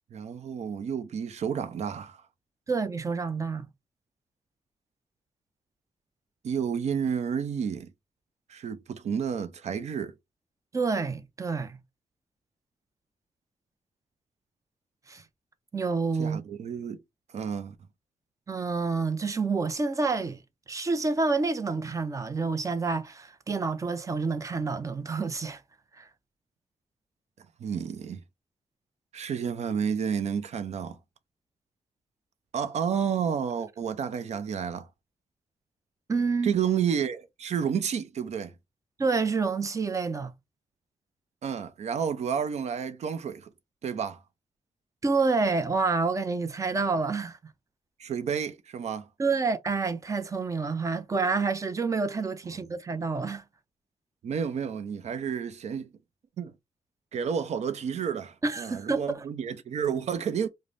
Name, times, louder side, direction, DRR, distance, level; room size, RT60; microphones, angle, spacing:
voice 1, 0.1-2.2 6.4-7.9 8.5-10.1 16.2-17.0 17.3-17.8 27.6-28.2 29.1-31.0 32.5-34.9 36.4-38.5 41.4-43.5 43.8-44.2 48.0-49.1 54.2-55.9 56.4-56.5 57.1-60.5, right 7 dB, 70° right, 0.6 m, -30 dB
voice 2, 2.7-3.7 10.7-11.8 15.1-15.2 15.7-16.4 18.5-20.4 20.7-25.6 26.0-26.1 36.1-36.5 39.0-40.3 45.0-47.4 49.2-53.4 58.4-59.2, right 4 dB, 25° right, 0.5 m, -28 dB
5.0 x 2.1 x 2.5 m
wide cardioid pair, 130°, 12 cm